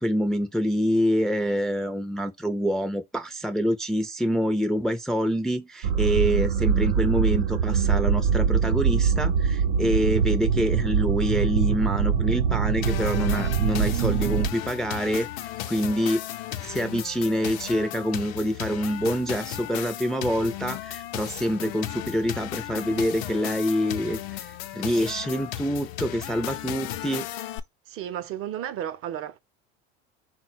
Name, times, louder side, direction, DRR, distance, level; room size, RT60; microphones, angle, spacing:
voice 1, 0.0-15.3 15.7-16.2 16.6-27.4, equal, ahead, 0.4 m, -26 dB
sound 1, 5.8-14.5, right 7 dB, 90° right, 0.7 m, -23 dB
sound 2, 12.8-27.6, left 13 dB, 70° left, 0.6 m, -35 dB
voice 2, 27.9-29.4, right 10 dB, 45° right, 0.6 m, -33 dB
3.7 x 2.2 x 4.2 m
supercardioid pair, 95°, 30 cm